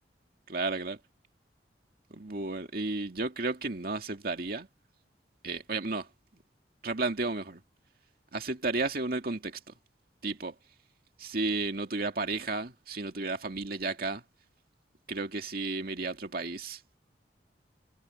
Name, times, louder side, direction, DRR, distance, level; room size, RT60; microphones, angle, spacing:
voice 1, 0.5-1.0 2.1-4.7 5.4-6.1 6.8-7.6 8.3-9.7 10.2-10.5 11.2-14.2 15.1-17.0, right 3 dB, 55° right, 2.3 m, -33 dB
head